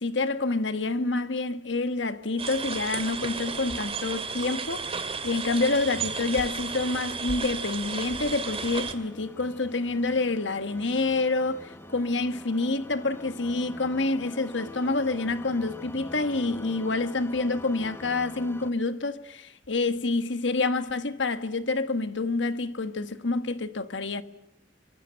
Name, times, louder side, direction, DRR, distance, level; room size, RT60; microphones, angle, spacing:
voice 1, 0.0-24.2, left 3 dB, 75° left, 1.4 m, -28 dB
sound 1, 2.4-8.9, right 5 dB, 30° right, 2.3 m, -33 dB
sound 2, 4.6-18.7, left 1 dB, 15° left, 1.3 m, -46 dB
25.0 x 23.0 x 8.9 m
head